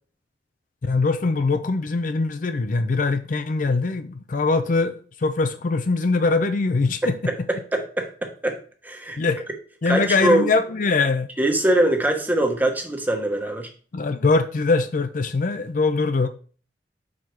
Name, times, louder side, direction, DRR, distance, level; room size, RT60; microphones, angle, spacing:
voice 1, 0.8-7.1 9.2-9.5 9.8-11.3 13.9-16.3, left 3 dB, 45° left, 0.5 m, -22 dB
voice 2, 7.0-8.6 8.8-9.2 9.8-10.5 11.4-13.7, right 1 dB, 10° right, 1.0 m, -23 dB
5.8 x 4.9 x 4.7 m
head